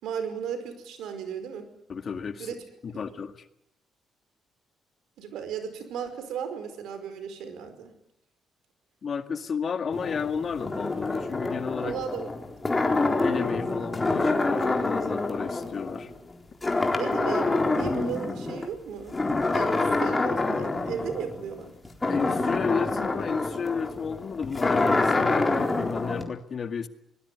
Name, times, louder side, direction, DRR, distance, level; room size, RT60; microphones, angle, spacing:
voice 1, 0.0-1.7 2.4-2.6 3.1-3.2 5.2-7.9 11.8-12.3 16.9-19.1 19.5-21.7, right 7 dB, 85° right, 9 dB, 5.0 m, -35 dB
voice 2, 1.9-2.5 2.8-3.5 9.0-12.0 13.2-16.1 22.1-26.9, left 6 dB, 50° left, 9 dB, 1.9 m, -32 dB
sound 1, 9.9-16.3 16.6-18.7 19.1-26.2, left 3 dB, 20° left, 4.1 m, -27 dB
25.0 x 19.5 x 9.7 m, 0.78 s
cardioid pair, 90°, 0 cm